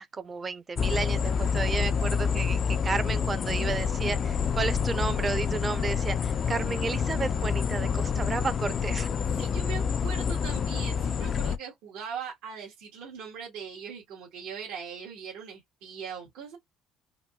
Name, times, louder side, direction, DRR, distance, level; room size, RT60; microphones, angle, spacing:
voice 1, 0.0-9.1 9.4-9.5, right 4 dB, 25° right, 0.5 m, -32 dB
sound 1, 0.8-11.6, left 6 dB, 40° left, 0.3 m, -28 dB
voice 2, 9.3-16.6, right 7 dB, 85° right, 1.6 m, -40 dB
3.9 x 2.1 x 2.2 m
cardioid pair, 130°, 0 cm